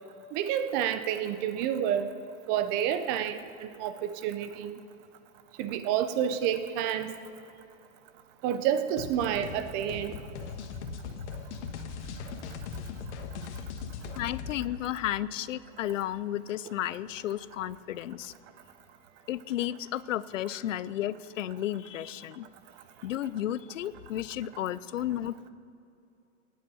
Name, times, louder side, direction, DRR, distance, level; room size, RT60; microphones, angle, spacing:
voice 1, 0.3-2.1 2.5-4.8 5.6-7.2 8.4-10.2, right 9 dB, 25° right, 11 dB, 0.6 m, -29 dB
sound 1, 9.0-14.6, left 5 dB, 65° left, 1.5 m, -39 dB
voice 2, 14.2-18.3 19.3-22.5 23.0-25.4, left 12 dB, 90° left, 18 dB, 0.6 m, -33 dB
18.5 x 7.3 x 6.3 m, 2.7 s
supercardioid pair, 150°, 37 cm